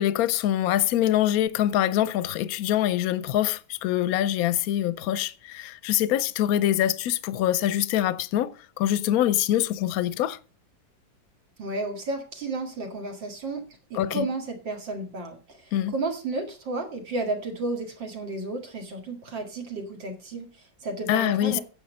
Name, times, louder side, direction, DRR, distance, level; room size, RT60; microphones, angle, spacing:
voice 1, 0.0-10.4 13.9-14.3 15.7-15.9 21.1-21.6, left 12 dB, 70° left, 0.9 m, -24 dB
voice 2, 11.6-21.6, right 2 dB, 80° right, 2.7 m, -32 dB
10.0 x 7.6 x 5.3 m
omnidirectional pair, 2.0 m